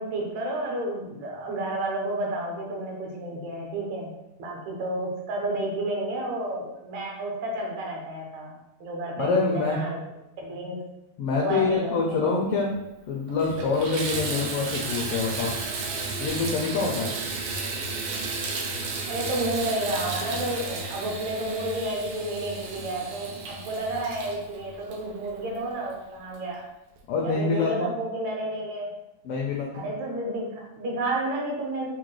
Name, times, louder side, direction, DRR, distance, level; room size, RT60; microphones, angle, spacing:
voice 1, 0.0-4.1 4.4-10.0 10.4-10.8 11.4-12.2 19.1-26.6 27.2-28.9 29.7-31.9, right 1 dB, 75° right, -1 dB, 2.1 m, -31 dB
voice 2, 9.2-9.8 11.2-12.8 13.1-15.5 16.2-17.1 27.1-27.9 29.2-29.8, left 4 dB, 85° left, -2 dB, 1.3 m, -26 dB
Water tap faucet / Bathtub (filling or washing), 12.7-12.8 13.3-25.7 26.3-26.4 27.0-27.1, right 3 dB, 90° right, 1.3 m, -33 dB
6.5 x 2.2 x 3.1 m, 0.92 s
omnidirectional pair, 3.4 m